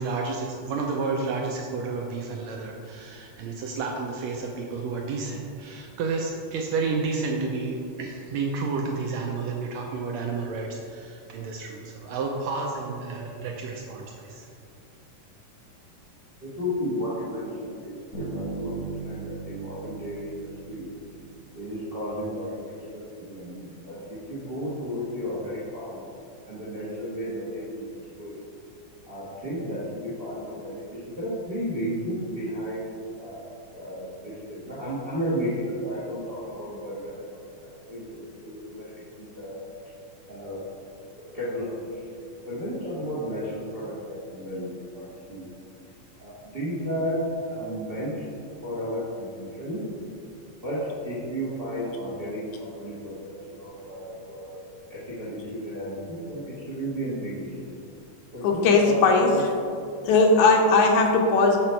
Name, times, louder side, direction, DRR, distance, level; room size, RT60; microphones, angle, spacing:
voice 1, 0.0-14.5, right 4 dB, 80° right, 0 dB, 1.6 m, -31 dB
voice 2, 16.4-20.9 21.5-22.6 22.9-26.0 26.5-27.9 28.2-28.3 29.1-32.9 33.2-33.4 33.7-37.1 37.9-39.6 40.3-40.6 41.2-41.9 42.5-45.5 46.2-47.2 47.5-48.1 48.6-49.8 50.6-54.6 54.9-57.7 58.3-59.4, equal, 55° right, -8 dB, 0.6 m, -33 dB
Bass guitar, 18.1-21.9, right 4 dB, 50° left, 1.1 m, -38 dB
voice 3, 58.4-59.3 60.0-61.6, left 3 dB, 80° left, 2 dB, 2.0 m, -18 dB
6.7 x 6.0 x 4.4 m, 2.4 s
omnidirectional pair, 3.6 m